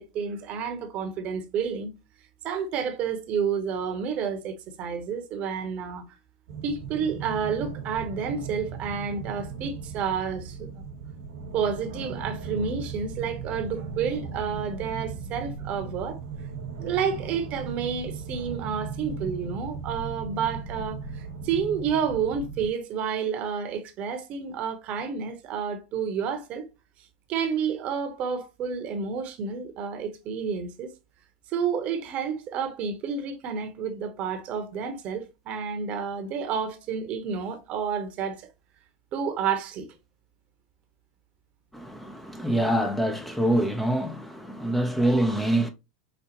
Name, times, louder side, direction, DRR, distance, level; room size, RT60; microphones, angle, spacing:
voice 1, 0.1-1.9 2.4-6.0 6.6-10.7 11.5-16.2 16.8-26.7 27.3-30.9 31.5-38.4 39.1-39.9, right 6 dB, 45° right, 1.0 m, -30 dB
sound 1, 6.5-22.7, right 5 dB, 70° right, 1.3 m, -37 dB
voice 2, 41.7-45.7, right 1 dB, 5° left, 0.6 m, -25 dB
5.2 x 2.4 x 3.0 m
hypercardioid pair, 95°, 3 cm